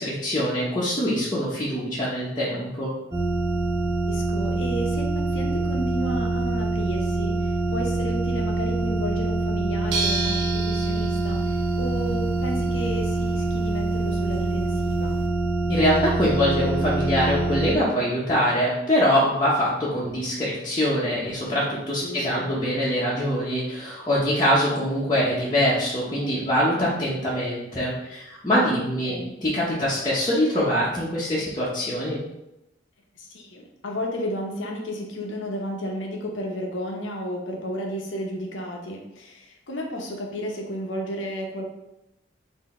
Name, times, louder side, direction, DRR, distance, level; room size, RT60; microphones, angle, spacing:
voice 1, 0.0-2.9 15.7-29.1 29.4-32.2, equal, 20° left, -9 dB, 0.9 m, -24 dB
sound 1, 3.1-17.7, right 2 dB, 15° right, 0.7 m, -25 dB
voice 2, 4.1-15.2 22.0-22.5 29.0-29.3 33.2-41.6, equal, 85° left, 1 dB, 0.9 m, -33 dB
sound 2, 9.9-15.3, right 3 dB, 75° right, 0.9 m, -34 dB
4.5 x 2.8 x 4.2 m, 0.89 s
head